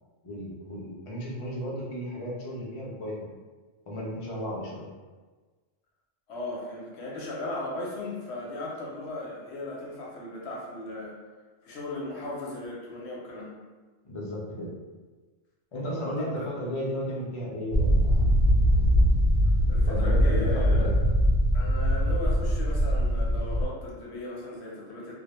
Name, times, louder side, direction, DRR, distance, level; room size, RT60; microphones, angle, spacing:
voice 1, 0.2-3.3 3.9-4.9 14.0-14.7 15.7-18.3 19.6-20.9, equal, 50° left, -5 dB, 0.4 m, -34 dB
voice 2, 6.3-11.2 11.6-13.6 15.8-16.5 19.7-20.9 21.5-25.1, left 2 dB, 65° left, -3 dB, 0.8 m, -36 dB
sound 1, 17.7-23.6, equal, 55° right, 0.7 m, -22 dB
2.2 x 2.1 x 2.9 m, 1.3 s
omnidirectional pair, 1.3 m